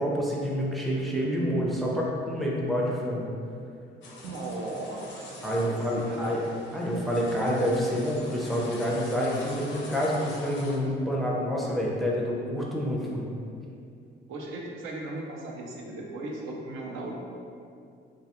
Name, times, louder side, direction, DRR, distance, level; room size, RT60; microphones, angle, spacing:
voice 1, 0.0-3.3 5.4-6.4 6.7-13.3, equal, ahead, -4 dB, 0.4 m, -28 dB
sound 1, 4.0-10.8, left 2 dB, 65° left, 0.5 m, -44 dB
voice 2, 4.2-5.3 5.6-6.4 14.3-17.1, right 2 dB, 85° right, -1 dB, 0.4 m, -37 dB
2.3 x 2.3 x 2.8 m, 2.4 s
cardioid pair, 90°, 20 cm